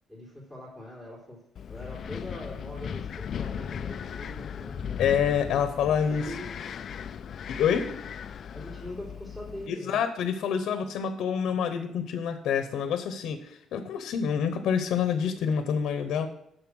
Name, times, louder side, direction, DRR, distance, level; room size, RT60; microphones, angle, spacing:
voice 1, 0.1-1.4 1.7-5.6 5.9-6.8 8.5-10.0, left 1 dB, 10° right, -6 dB, 3.4 m, -43 dB
Wind, 1.6-9.7, left 8 dB, 50° left, 0.4 m, -37 dB
voice 2, 5.0-6.3 7.5-7.9 9.7-16.3, left 7 dB, 75° left, 9 dB, 0.9 m, -27 dB
9.9 x 6.6 x 6.3 m, 0.79 s
cardioid pair, 150°, 0 cm